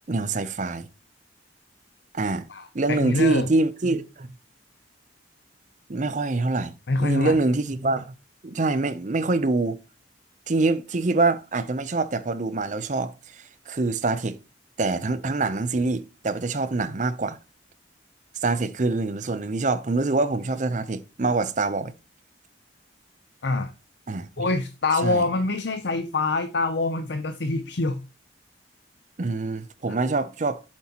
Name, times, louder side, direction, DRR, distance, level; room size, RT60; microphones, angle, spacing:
voice 1, 0.1-0.9 2.1-2.5 2.7-4.3 5.9-6.7 7.0-8.1 8.4-9.8 10.5-14.4 14.8-17.4 18.4-21.9 24.1-24.5 25.0-25.2 29.2-30.6, right 3 dB, 40° right, 0.6 m, -25 dB
voice 2, 2.5-3.5 6.9-7.4 23.4-23.7 24.4-28.0 29.9-30.0, left 3 dB, 65° left, 0.7 m, -25 dB
7.6 x 7.4 x 2.9 m
head